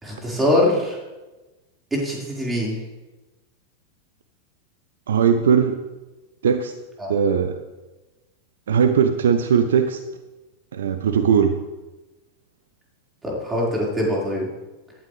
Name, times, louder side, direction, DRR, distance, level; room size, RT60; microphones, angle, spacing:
voice 1, 0.0-1.0 1.9-2.8 7.0-7.1 13.2-14.5, left 1 dB, 10° right, -4 dB, 4.7 m, -23 dB
voice 2, 5.1-5.8 6.4-6.8 7.1-7.6 8.7-10.0 10.7-11.5, right 7 dB, 60° right, 10 dB, 0.8 m, -19 dB
18.0 x 11.5 x 3.3 m, 1.1 s
figure-of-eight pair, 90°, 0 cm